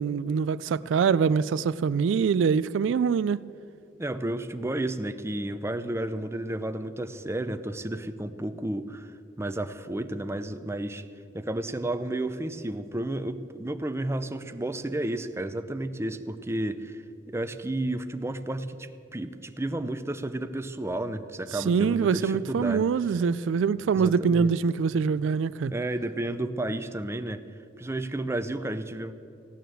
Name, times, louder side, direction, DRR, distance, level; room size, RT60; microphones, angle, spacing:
voice 1, 0.0-3.4 21.5-25.7, right 6 dB, 75° right, 0.3 m, -24 dB
voice 2, 4.0-11.0 11.3-22.9 23.9-24.5 25.7-27.4 27.8-29.1, right 1 dB, 15° right, 0.6 m, -32 dB
16.0 x 9.2 x 7.8 m
head